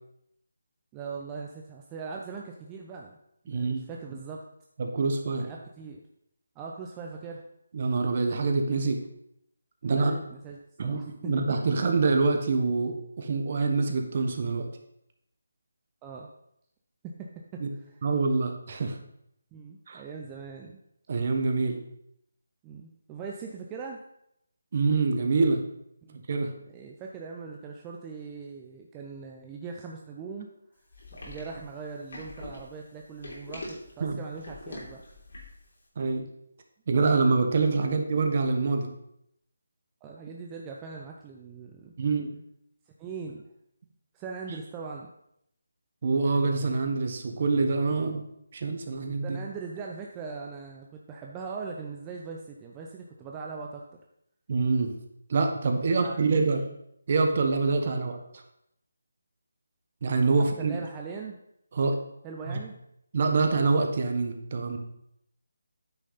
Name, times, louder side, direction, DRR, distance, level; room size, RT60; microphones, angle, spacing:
voice 1, 0.9-3.2 3.5-4.4 5.4-6.0 6.6-7.4 9.8-11.3 16.0-16.3 17.0-18.0 19.5-20.8 22.6-24.0 26.0-26.2 26.7-30.5 31.2-35.0 40.0-41.9 43.0-43.4 44.1-45.1 48.1-48.2 49.2-53.8 55.9-56.4 60.4-61.4 62.2-62.8, right 5 dB, 15° right, 0 dB, 0.6 m, -40 dB
voice 2, 3.5-3.8 4.1-4.2 4.8-5.5 7.7-9.0 9.8-10.1 10.8-14.7 17.6-17.7 18.0-19.0 19.9-20.0 21.1-21.8 24.7-25.6 26.3-26.5 34.0-34.2 36.0-36.3 36.9-38.9 42.0-42.5 46.0-48.3 48.5-49.4 54.5-55.0 55.3-56.7 57.1-58.2 60.0-60.8 61.7-61.9 62.5-62.6 63.1-64.8, right 4 dB, 45° right, 4 dB, 1.2 m, -25 dB
sound 1, 30.9-35.7, left 2 dB, 65° left, 3.2 m, -43 dB
9.1 x 6.4 x 4.1 m, 0.76 s
figure-of-eight pair, 165°, 0 cm